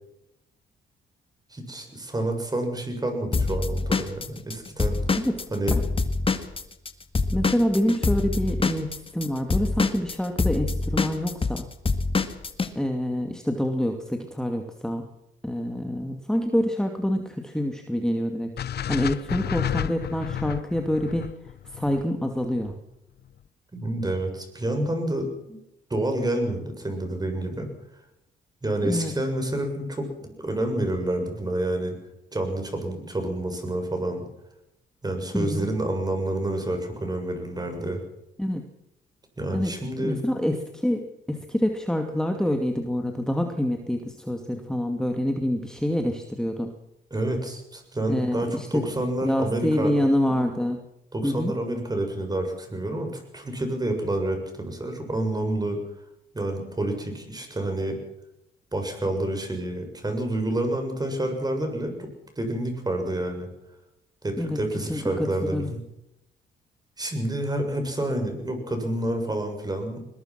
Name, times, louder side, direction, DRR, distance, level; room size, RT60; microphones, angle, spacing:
voice 1, 1.5-5.0 5.5-5.7 23.7-25.6 25.9-27.7 28.6-32.0 32.3-34.2 35.0-38.0 39.4-40.2 47.1-49.9 51.1-55.8 56.3-58.0 58.7-62.1 62.4-63.5 64.2-65.8 67.0-70.0, right 1 dB, 20° right, 5 dB, 7.2 m, -28 dB
Drum kit / Drum, 3.3-6.9 7.1-12.7, left 3 dB, 25° left, 2.1 m, -25 dB
voice 2, 7.3-11.7 12.8-15.1 15.4-18.5 18.9-21.3 21.7-22.7 28.8-29.1 35.3-35.7 38.4-38.6 39.5-39.7 40.0-41.0 41.3-46.7 48.1-48.9 49.2-50.8 51.2-51.5 64.4-64.6 64.9-65.7, equal, 5° left, 4 dB, 2.5 m, -26 dB
sound 1, 18.6-22.7, left 10 dB, 55° left, 0.9 m, -31 dB
21.5 x 21.0 x 6.1 m, 0.84 s
cardioid pair, 90°, 20 cm